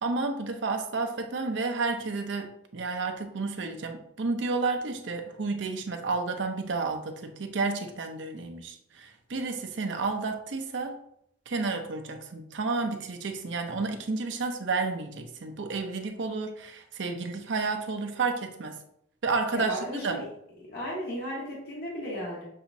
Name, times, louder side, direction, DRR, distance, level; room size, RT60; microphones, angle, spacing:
voice 1, 0.0-11.0 11.5-18.8 19.2-20.2, right 3 dB, 65° right, 5 dB, 0.6 m, -31 dB
voice 2, 19.5-20.2 20.7-22.4, equal, 55° left, -5 dB, 1.5 m, -35 dB
6.7 x 2.9 x 2.6 m, 0.72 s
head